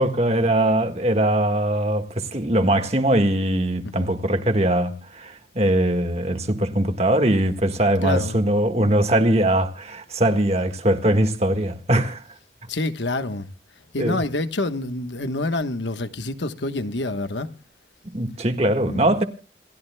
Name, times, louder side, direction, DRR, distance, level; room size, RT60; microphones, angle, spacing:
voice 1, 0.0-12.2 14.0-14.2 18.1-19.2, right 1 dB, 35° right, 1.6 m, -21 dB
voice 2, 8.0-8.6 12.7-13.5 13.9-17.5 18.9-19.2, left 2 dB, 80° left, 1.2 m, -27 dB
28.0 x 14.0 x 2.3 m
head